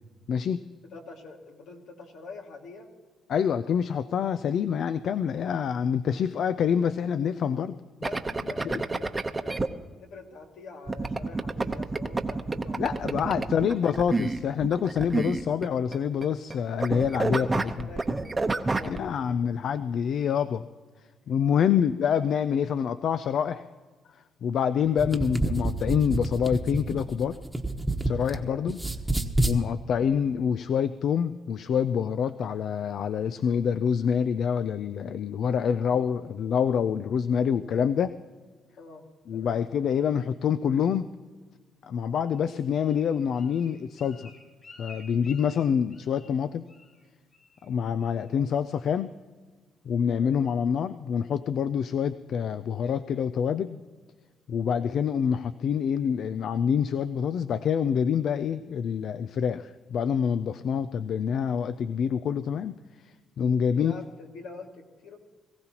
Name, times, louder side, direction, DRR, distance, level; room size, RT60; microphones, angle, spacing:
voice 1, 0.3-0.6 3.3-7.8 8.6-8.8 12.8-17.9 18.8-20.6 21.3-23.7 24.4-27.4 28.0-28.8 29.4-38.2 39.3-41.1 41.8-44.3 44.8-46.6 47.6-49.1 49.9-53.8 54.5-62.8 63.0-63.9, left 7 dB, 65° left, 12 dB, 0.4 m, -26 dB
voice 2, 0.8-2.9 8.1-9.6 10.0-13.7 17.3-19.5 21.6-21.8 28.3-28.7 29.9-30.2 35.9-36.1 38.8-39.6 48.2-48.5 50.2-50.5 54.7-55.0 63.7-65.2, left 3 dB, 85° left, 1 dB, 2.2 m, -46 dB
sound 1, 8.0-9.7 10.9-16.5 16.8-19.0, right 3 dB, 25° right, 0.9 m, -29 dB
sound 2, 24.8-28.4 28.7-29.6, right 1 dB, 5° right, 1.2 m, -28 dB
Bird, 42.3-46.4 46.7-47.0 47.3-47.7 48.0-48.4 48.8-48.9, left 4 dB, 50° left, 4.9 m, -51 dB
22.0 x 15.5 x 3.0 m, 1.4 s
cardioid pair, 90°, 0 cm